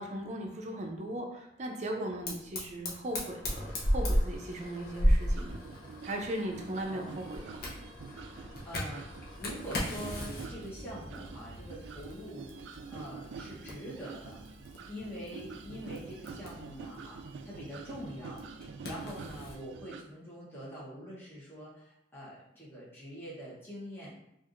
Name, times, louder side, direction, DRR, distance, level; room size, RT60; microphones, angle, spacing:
voice 1, 0.0-5.6 6.0-7.4, right 1 dB, 40° right, 2 dB, 0.6 m, -38 dB
Fire, 2.3-19.6, equal, 55° left, 0.7 m, -36 dB
sound 1, 5.3-20.0, right 5 dB, 85° right, 0.3 m, -47 dB
voice 2, 6.9-7.2 8.3-9.1 9.4-12.5 12.9-14.4 14.9-18.4 18.8-24.1, equal, 15° left, -9 dB, 1.0 m, -44 dB
4.5 x 2.5 x 2.5 m, 0.81 s
head